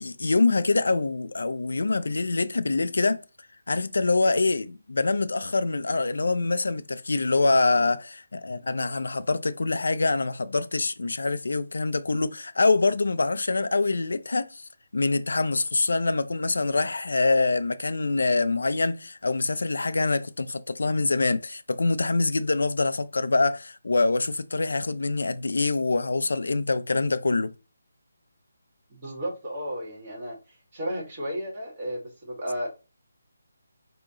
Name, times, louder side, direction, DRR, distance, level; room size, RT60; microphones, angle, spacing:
voice 1, 0.0-3.2 3.7-27.5, left 3 dB, 75° left, 0.4 m, -25 dB
voice 2, 28.9-30.4 30.7-32.7, equal, 20° right, 1.6 m, -33 dB
4.9 x 2.9 x 3.7 m
hypercardioid pair, 175°, 0 cm